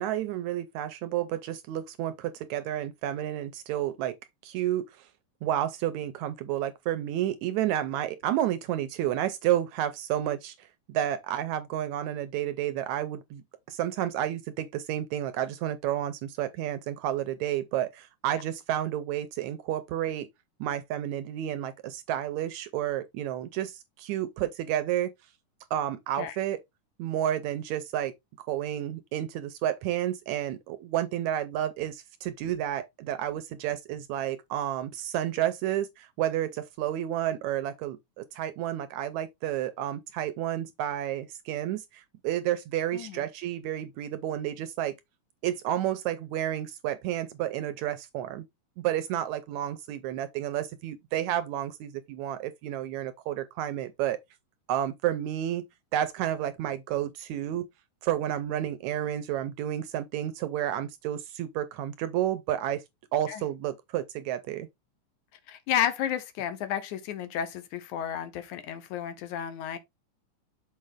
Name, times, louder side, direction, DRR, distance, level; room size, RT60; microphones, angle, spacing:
voice 1, 0.0-4.2 4.4-5.1 5.4-13.4 13.7-20.3 20.6-25.1 25.7-26.6 27.0-28.1 28.5-44.9 45.4-48.4 48.8-54.2 54.7-55.6 55.9-57.7 58.0-62.8 63.1-64.7, right 12 dB, 75° right, 1.8 m, -31 dB
voice 2, 42.9-43.3 63.3-63.4 65.5-69.8, left 10 dB, 75° left, 2.2 m, -32 dB
6.5 x 5.1 x 3.5 m
omnidirectional pair, 3.7 m